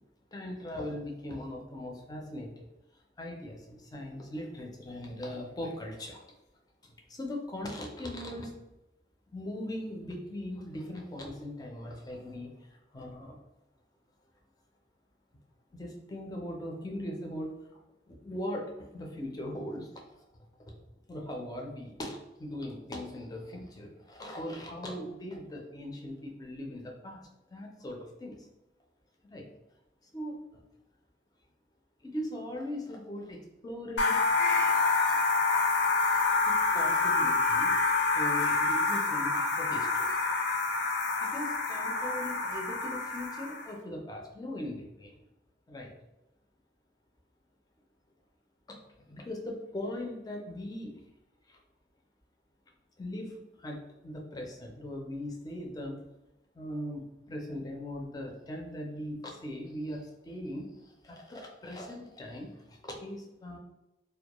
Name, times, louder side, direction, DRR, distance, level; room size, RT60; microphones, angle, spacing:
voice 1, 0.3-2.6 3.2-6.2 6.8-8.5 9.3-12.5 12.9-13.4 15.7-17.5 18.1-19.9 20.7-20.8 21.1-28.5 29.3-29.4 30.1-30.6 32.0-34.2 36.4-37.8 38.1-40.1 41.2-45.1 45.7-45.9 48.7-48.8 49.1-50.9 51.5-51.6 53.0-56.0 56.5-63.6, left 1 dB, 20° left, 0 dB, 0.4 m, -40 dB
sound 1, 34.0-43.7, left 3 dB, 80° left, 0.4 m, -27 dB
2.2 x 2.1 x 2.9 m, 0.93 s
head